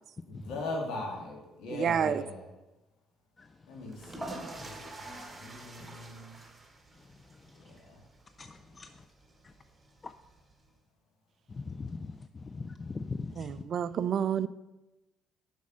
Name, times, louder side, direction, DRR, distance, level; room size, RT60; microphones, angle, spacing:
voice 1, 0.2-2.5 3.7-6.4 7.5-8.0, left 2 dB, 65° left, 2.3 m, -40 dB
voice 2, 1.8-2.2 13.4-14.5, right 8 dB, 50° right, 0.3 m, -29 dB
sound 1, 3.8-10.7, right 2 dB, 20° right, 1.5 m, -47 dB
voice 3, 8.4-8.9 9.4-9.5 10.0-10.1 11.5-13.5, left 4 dB, 30° left, 0.4 m, -40 dB
7.1 x 5.3 x 6.1 m
figure-of-eight pair, 50°, 0 cm